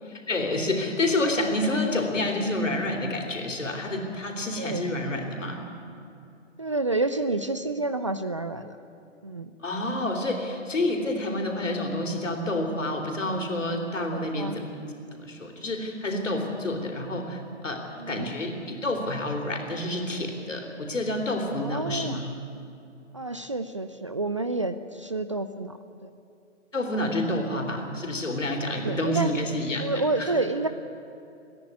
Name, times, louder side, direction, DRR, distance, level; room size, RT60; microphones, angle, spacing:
voice 1, 0.3-5.6 9.6-14.7 15.1-17.8 18.1-22.4 26.7-30.3, left 1 dB, 75° left, 2 dB, 3.9 m, -28 dB
voice 2, 6.6-8.8 9.2-9.5 14.1-14.6 18.0-18.3 21.6-22.2 23.1-26.1 28.7-29.3 29.8-30.7, right 2 dB, 25° right, 10 dB, 0.4 m, -29 dB
28.5 x 10.5 x 9.6 m, 2.6 s
figure-of-eight pair, 140°, 38 cm